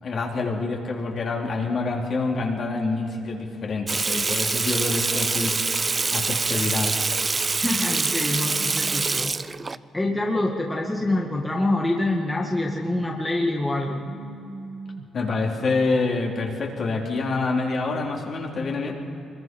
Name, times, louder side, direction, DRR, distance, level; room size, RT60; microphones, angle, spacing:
voice 1, 0.0-7.3 15.1-18.9, left 3 dB, 50° left, -1 dB, 3.6 m, -27 dB
Water tap faucet / Sink (filling or washing), 3.9-9.8, right 4 dB, 30° right, 0.5 m, -25 dB
voice 2, 7.6-9.3 9.6-14.1, left 2 dB, 15° left, -1 dB, 2.0 m, -26 dB
Telephone, 8.0-9.1 10.0-11.1 12.0-13.1 14.0-15.1, right 3 dB, 85° right, 1.8 m, -40 dB
24.5 x 21.5 x 5.4 m, 2.6 s
cardioid pair, 90°, 0 cm